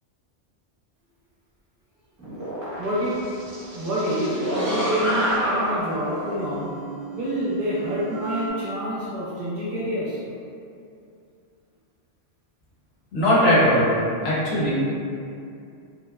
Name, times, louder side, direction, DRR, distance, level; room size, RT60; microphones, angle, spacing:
sound 1, 2.2-8.5, right 1 dB, 20° right, 0.7 m, -29 dB
voice 1, 2.8-3.2 3.7-6.7 7.1-10.2, equal, 60° right, -8 dB, 0.7 m, -27 dB
voice 2, 13.1-14.0 14.2-14.7, equal, 70° left, -7 dB, 0.9 m, -19 dB
2.7 x 2.1 x 2.2 m, 2.5 s
omnidirectional pair, 1.2 m